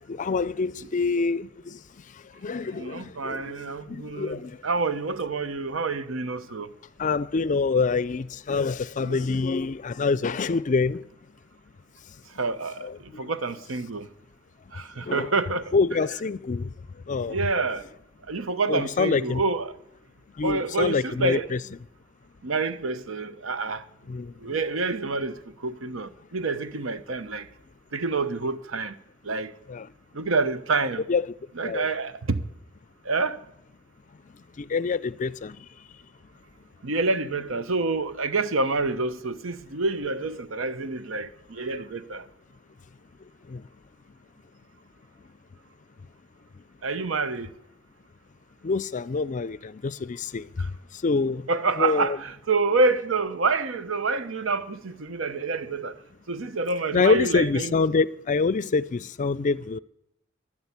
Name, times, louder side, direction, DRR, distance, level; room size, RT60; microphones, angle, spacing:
voice 1, 0.1-4.6 7.0-11.0 12.8-13.3 15.0-15.3 15.7-16.7 17.1-17.4 18.7-19.4 20.4-21.6 24.1-24.6 29.7-29.9 31.1-31.2 31.6-31.9 34.6-35.7 43.5-43.7 46.5-46.6 48.6-51.5 51.8-52.2 56.9-59.8, left 4 dB, 40° left, 0.4 m, -26 dB
voice 2, 2.7-6.7 9.0-9.2 12.4-12.8 13.2-14.1 14.7-15.7 17.3-17.8 18.3-19.7 20.4-21.5 22.4-23.8 24.4-27.5 27.9-28.9 29.2-29.5 30.1-31.1 31.6-32.4 33.0-33.4 36.8-42.3 46.8-47.5 51.5-55.9 56.3-57.7, right 3 dB, 85° right, 0.9 m, -27 dB
11.5 x 11.0 x 8.3 m
head